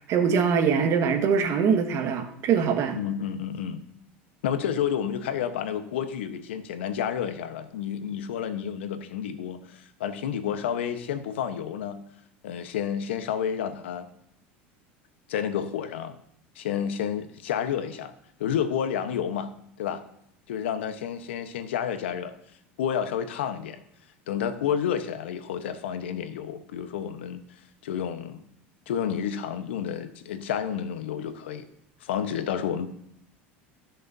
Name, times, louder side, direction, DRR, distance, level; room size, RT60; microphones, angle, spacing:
voice 1, 0.0-3.0, right 6 dB, 50° right, 5 dB, 1.6 m, -23 dB
voice 2, 2.9-3.8 4.4-12.0 12.4-14.1 15.3-16.1 16.5-18.1 18.4-19.5 19.8-20.0 20.5-22.3 22.8-23.8 24.3-27.4 27.8-28.4 28.9-31.7 32.0-32.9, left 8 dB, 85° left, 10 dB, 1.1 m, -30 dB
17.5 x 6.5 x 2.7 m, 0.73 s
hypercardioid pair, 95°, 6 cm